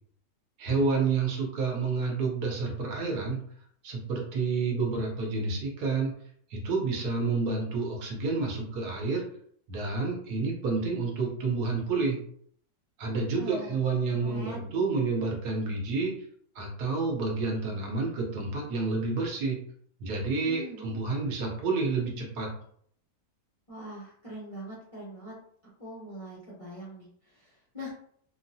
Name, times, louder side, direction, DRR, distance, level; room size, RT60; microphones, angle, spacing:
voice 1, 0.6-3.4 3.8-6.1 6.5-9.2 9.7-12.2 13.0-16.1 16.5-19.6 20.0-22.5, right 4 dB, 65° right, -1 dB, 1.3 m, -29 dB
voice 2, 13.4-13.8 14.2-14.7 20.4-20.9 23.7-25.4 25.8-27.1 27.3-27.9, equal, 60° left, -7 dB, 0.3 m, -42 dB
3.6 x 2.0 x 2.6 m, 0.63 s
omnidirectional pair, 1.9 m